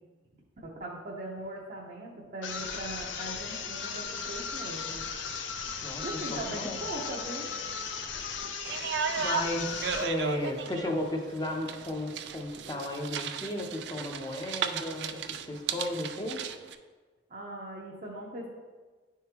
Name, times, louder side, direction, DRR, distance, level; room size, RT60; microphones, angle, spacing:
voice 1, 0.6-5.1 6.0-7.5 17.3-18.5, right 1 dB, 45° right, -4 dB, 0.7 m, -40 dB
sound 1, 2.4-10.2, left 5 dB, 80° left, 0.6 m, -37 dB
voice 2, 5.8-6.8 9.2-16.4, left 1 dB, 20° left, 1 dB, 0.7 m, -34 dB
sound 2, 8.6-16.7, right 7 dB, 65° right, 0.3 m, -36 dB
10.0 x 3.7 x 2.9 m, 1.4 s
head